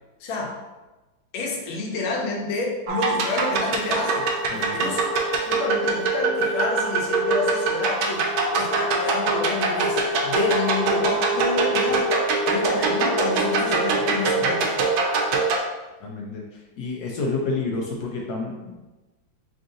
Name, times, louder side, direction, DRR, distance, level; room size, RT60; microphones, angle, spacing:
voice 1, 0.2-0.6 1.3-4.3 4.7-5.1 5.5-12.2 12.5-14.8, left 3 dB, 85° left, 0 dB, 1.5 m, -29 dB
sound 1, 2.9-15.6, right 3 dB, 90° right, 1.4 m, -23 dB
voice 2, 4.5-4.9 16.0-16.4 16.8-18.8, left 3 dB, 70° left, -1 dB, 1.0 m, -29 dB
3.8 x 2.6 x 3.7 m, 1.1 s
omnidirectional pair, 2.1 m